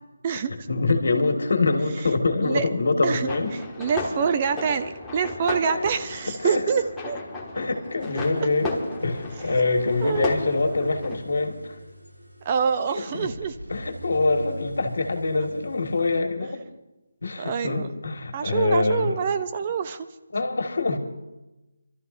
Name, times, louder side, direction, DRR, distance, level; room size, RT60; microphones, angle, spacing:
voice 1, 0.7-3.5 5.6-5.9 6.4-6.6 7.5-11.8 13.0-13.3 13.7-16.6 17.2-19.2 20.3-21.0, left 3 dB, 70° left, 4 dB, 1.9 m, -25 dB
sound 1, 3.3-11.2, left 2 dB, 5° left, 1.5 m, -35 dB
voice 2, 3.8-7.2 10.0-10.4 12.4-13.6 17.4-17.9 18.3-20.1, right 6 dB, 30° right, 9 dB, 0.6 m, -26 dB
sound 2, 7.6-16.2, right 1 dB, 80° right, 3.5 m, -43 dB
28.5 x 13.0 x 2.7 m, 1.0 s
figure-of-eight pair, 160°, 0 cm